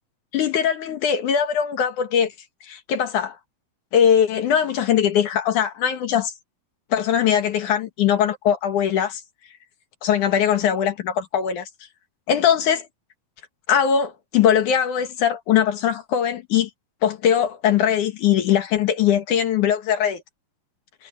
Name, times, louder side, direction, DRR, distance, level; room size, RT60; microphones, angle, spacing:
voice 1, 0.3-2.3 2.7-3.4 3.9-6.3 6.9-9.2 10.0-11.7 12.3-12.9 13.7-16.7 17.0-20.2, left 9 dB, 65° left, 2.7 m, -21 dB
omnidirectional pair, 4.2 m